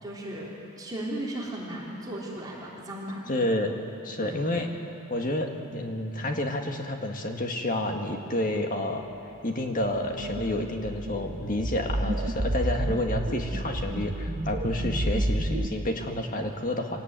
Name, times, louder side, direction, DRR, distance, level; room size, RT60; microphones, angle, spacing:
voice 1, 0.0-3.2 4.2-4.5, right 1 dB, 20° right, -5 dB, 3.6 m, -36 dB
voice 2, 3.3-3.8 4.0-4.7 5.1-9.0 9.4-17.0, left 1 dB, 40° left, 3 dB, 1.9 m, -29 dB
sound 1, 10.1-15.7, right 1 dB, 45° right, 1.0 m, -30 dB
24.0 x 17.5 x 9.0 m, 2.7 s
head